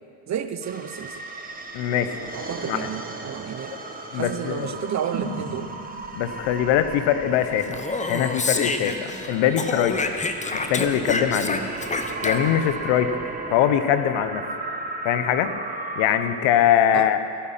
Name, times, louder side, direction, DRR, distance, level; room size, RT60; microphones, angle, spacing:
voice 1, 0.3-1.2 2.3-3.8 4.1-5.7 16.9-17.1, right 8 dB, 35° right, 10 dB, 0.7 m, -31 dB
sound 1, 0.6-16.2, right 3 dB, 20° right, 1.3 m, -36 dB
voice 2, 1.7-2.2 2.7-2.9 4.1-4.8 6.2-7.8 8.1-10.2 10.5-11.6 12.2-14.5 15.0-15.5 16.0-17.2, left 10 dB, 70° left, 10 dB, 1.0 m, -22 dB
sound 2, 5.1-9.1 9.4-9.5, right 4 dB, 90° right, 3.0 m, -39 dB
Speech, 7.6-9.3 9.6-12.7, left 3 dB, 15° left, 0.8 m, -28 dB
16.5 x 8.7 x 5.7 m, 2.7 s
supercardioid pair, 100°, 47 cm